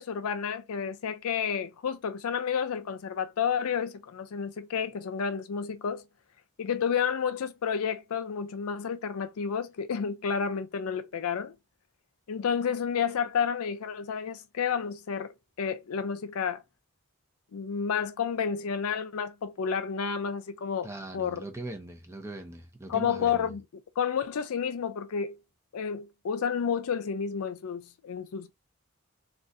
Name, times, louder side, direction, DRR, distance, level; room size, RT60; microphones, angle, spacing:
voice 1, 0.0-6.0 6.6-11.5 12.3-16.6 17.5-20.9 21.1-21.4 22.9-23.6 24.0-25.4 25.7-28.5, left 7 dB, 85° left, 0.4 m, -30 dB
voice 2, 20.8-23.6, right 2 dB, 10° right, 0.6 m, -41 dB
3.6 x 2.4 x 2.6 m
head